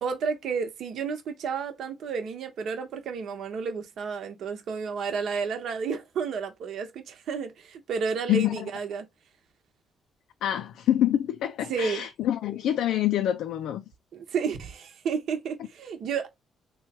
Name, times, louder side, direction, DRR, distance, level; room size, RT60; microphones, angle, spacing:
voice 1, 0.0-9.1 11.7-12.1 14.1-16.3, right 6 dB, 70° right, 1.0 m, -31 dB
voice 2, 8.3-8.7 10.4-13.8, left 12 dB, 85° left, 0.3 m, -26 dB
3.1 x 2.3 x 4.2 m
cardioid pair, 90°, 0 cm